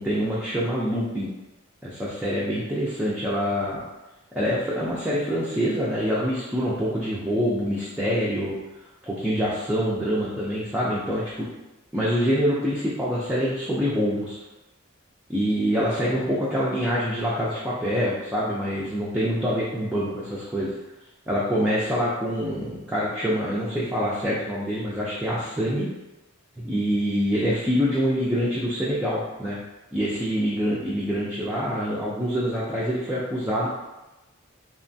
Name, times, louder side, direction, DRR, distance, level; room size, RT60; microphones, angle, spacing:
voice 1, 0.0-1.3 1.8-3.8 4.3-8.6 9.0-11.5 11.9-14.4 15.3-20.7 21.3-25.9 26.6-29.6 29.9-33.7, equal, 5° right, -8 dB, 0.3 m, -25 dB
3.0 x 2.1 x 2.6 m, 1.0 s
head